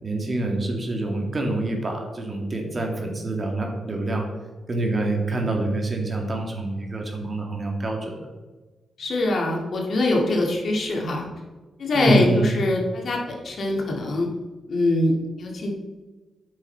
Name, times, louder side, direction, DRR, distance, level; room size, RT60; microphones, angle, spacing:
voice 1, 0.0-4.3 4.7-8.2 11.9-12.6, right 2 dB, 40° right, 2 dB, 2.1 m, -26 dB
voice 2, 9.0-11.3 11.8-14.3 14.7-15.7, left 2 dB, 60° left, 0 dB, 2.0 m, -23 dB
8.7 x 6.4 x 4.4 m, 1.2 s
cardioid pair, 60°, 0 cm